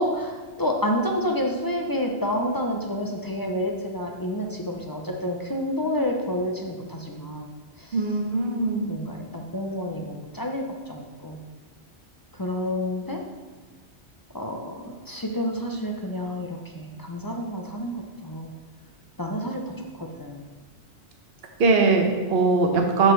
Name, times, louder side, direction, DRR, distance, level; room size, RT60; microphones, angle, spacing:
voice 1, 0.0-7.5 7.8-8.1 8.9-11.4 12.3-13.2 14.3-18.5 19.2-20.4, equal, 25° left, 2 dB, 0.5 m, -29 dB
voice 2, 7.9-8.8 21.6-23.1, right 3 dB, 55° right, 3 dB, 1.2 m, -21 dB
12.0 x 5.0 x 3.2 m, 1.4 s
omnidirectional pair, 1.2 m